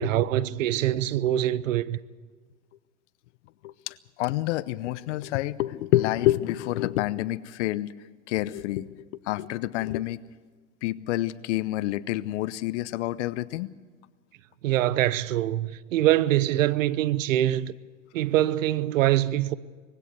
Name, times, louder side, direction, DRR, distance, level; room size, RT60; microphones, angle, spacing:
voice 1, 0.0-2.0 14.6-17.7 18.1-19.5, right 13 dB, 75° right, 0.9 m, -24 dB
voice 2, 3.6-7.9 8.3-8.9 9.3-10.2 10.8-13.7, left 16 dB, 60° left, 0.9 m, -28 dB
20.5 x 16.0 x 8.3 m
hypercardioid pair, 115°, 39 cm